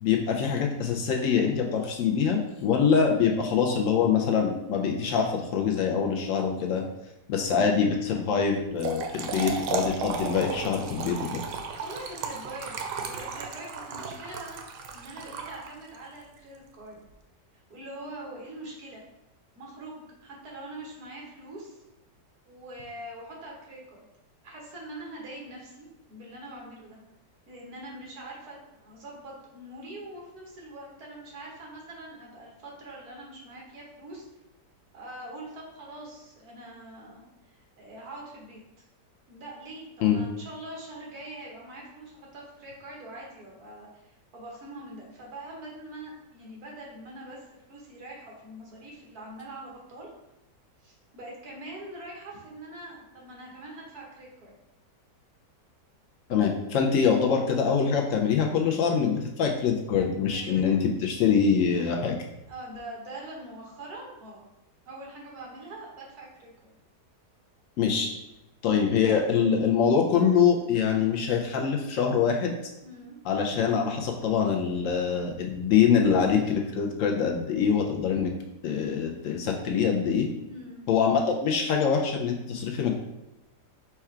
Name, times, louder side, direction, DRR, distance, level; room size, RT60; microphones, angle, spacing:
voice 1, 0.0-6.8 7.3-11.4 40.0-40.2 56.3-62.1 67.8-68.1 68.6-72.5 73.2-78.3 78.6-80.3 80.9-83.0, left 6 dB, 75° left, 1 dB, 0.7 m, -24 dB
Trickle dribble / Fill (with liquid), 8.6-16.0, right 5 dB, 90° right, 1.2 m, -34 dB
voice 2, 11.8-14.6 14.9-17.1 17.7-19.0 19.6-21.8 22.5-24.1 24.4-27.0 27.5-34.2 34.9-38.8 39.3-50.1 50.8-54.6 60.2-60.9 62.5-64.4 64.9-66.5 72.8-73.2 80.5-80.9, right 1 dB, 65° right, -3 dB, 1.5 m, -43 dB
4.5 x 2.4 x 4.3 m, 0.93 s
omnidirectional pair, 1.8 m